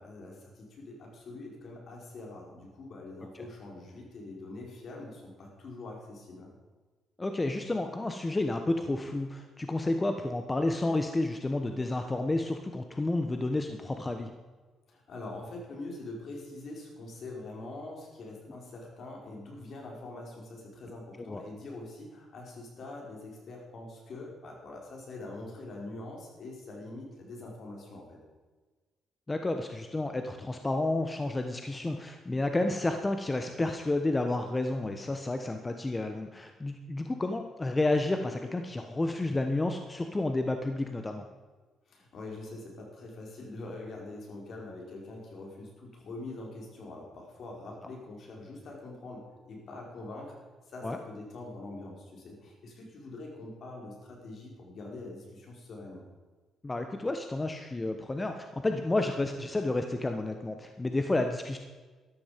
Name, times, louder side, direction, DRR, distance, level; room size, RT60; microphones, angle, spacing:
voice 1, 0.0-6.5 14.9-28.2 41.9-50.4 50.6-56.0, left 2 dB, 60° left, -1 dB, 5.1 m, -44 dB
voice 2, 7.2-14.3 21.2-21.4 29.3-41.2 50.8-51.0 56.6-61.6, left 2 dB, 20° left, 6 dB, 1.1 m, -31 dB
13.0 x 13.0 x 5.2 m, 1.3 s
cardioid pair, 90°, 0 cm